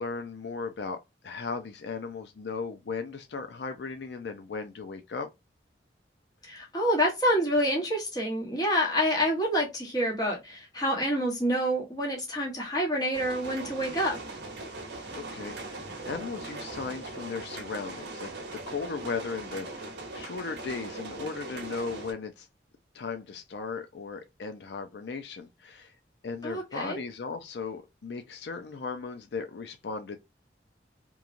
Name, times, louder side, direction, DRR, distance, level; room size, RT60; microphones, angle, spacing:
voice 1, 0.0-5.3 15.2-22.5 22.9-25.9 26.2-30.2, left 4 dB, 75° left, 0.4 m, -37 dB
voice 2, 6.4-14.2 26.4-27.0, equal, 20° left, 1.0 m, -27 dB
sound 1, 13.1-22.1, right 2 dB, 80° right, 0.7 m, -40 dB
3.0 x 2.3 x 2.5 m
head